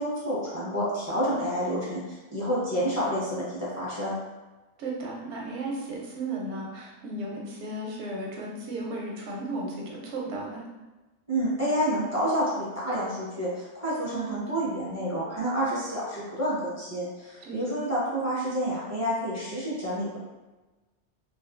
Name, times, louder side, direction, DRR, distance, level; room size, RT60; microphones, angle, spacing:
voice 1, 0.0-4.1 11.3-20.2, equal, 15° left, -9 dB, 0.7 m, -29 dB
voice 2, 4.8-10.6 14.1-14.4 17.4-17.6, right 2 dB, 90° right, -2 dB, 0.9 m, -35 dB
2.5 x 2.4 x 2.4 m, 1.2 s
omnidirectional pair, 1.2 m